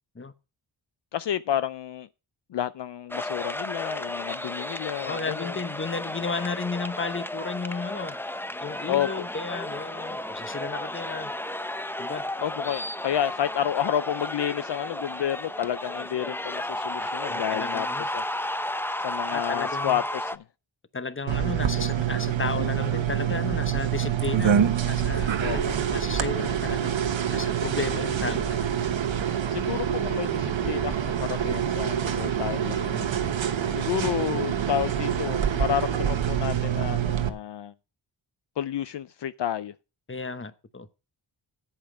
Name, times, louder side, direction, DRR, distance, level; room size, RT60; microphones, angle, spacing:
voice 1, 1.1-2.1 2.5-5.6 8.9-9.3 12.4-17.9 18.1-18.2 19.0-20.4 25.4-25.6 29.5-32.9 33.7-37.7 38.6-39.7, left 10 dB, 65° left, 0.5 m, -30 dB
sound 1, 3.1-20.4, left 1 dB, 5° left, 0.5 m, -33 dB
voice 2, 5.0-8.2 8.6-11.3 12.0-12.3 17.0-18.1 19.2-20.0 20.9-26.9 27.3-28.8 32.9-33.2 40.1-40.9, left 4 dB, 25° left, 1.0 m, -34 dB
sound 2, 21.3-37.3, right 9 dB, 75° right, 1.1 m, -26 dB
8.6 x 8.1 x 5.0 m
cardioid pair, 55°, 46 cm